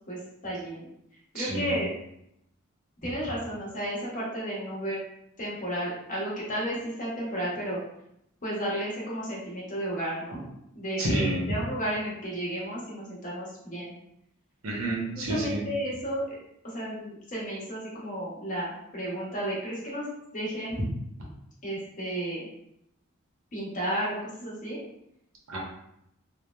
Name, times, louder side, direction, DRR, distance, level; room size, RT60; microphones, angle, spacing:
voice 1, 0.1-0.9 1.3-1.9 3.0-5.0 5.4-7.8 8.4-10.4 10.7-13.9 15.1-16.2 16.7-20.1 20.3-20.8 21.6-22.5 23.5-24.8, right 1 dB, 40° left, -7 dB, 1.0 m, -33 dB
voice 2, 1.3-1.8 11.0-11.4 14.6-15.6 25.5-25.6, right 1 dB, 85° right, -3 dB, 0.9 m, -29 dB
3.2 x 2.1 x 2.2 m, 0.78 s
head